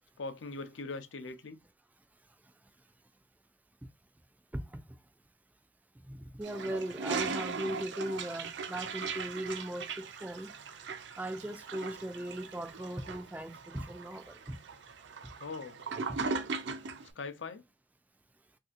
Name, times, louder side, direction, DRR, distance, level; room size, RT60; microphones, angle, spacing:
voice 1, 0.2-1.6 15.4-15.8 17.2-17.6, left 3 dB, 90° left, 0.6 m, -41 dB
voice 2, 6.1-10.5 11.2-14.6, right 1 dB, 10° right, 0.3 m, -38 dB
Toilet flush, 6.4-17.1, right 4 dB, 70° right, 0.5 m, -39 dB
3.2 x 2.8 x 2.4 m
head